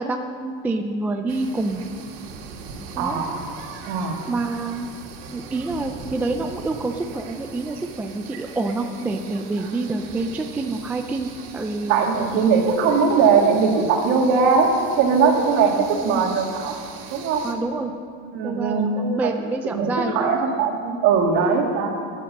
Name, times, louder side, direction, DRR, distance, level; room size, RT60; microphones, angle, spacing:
voice 1, 0.0-1.8 2.9-3.2 4.3-4.9 5.3-12.0 15.9-16.3 17.4-17.9 18.4-20.3, right 3 dB, 5° right, 4 dB, 0.3 m, -27 dB
sound 1, 1.3-17.5, right 5 dB, 70° right, 2.5 m, -40 dB
voice 2, 3.0-3.4 3.8-4.2 11.9-14.7 15.0-16.8 17.1-17.4 18.3-19.3 19.7-21.9, right 5 dB, 55° right, 1 dB, 2.5 m, -20 dB
16.5 x 11.0 x 6.5 m, 2.2 s
cardioid pair, 165°, 30 cm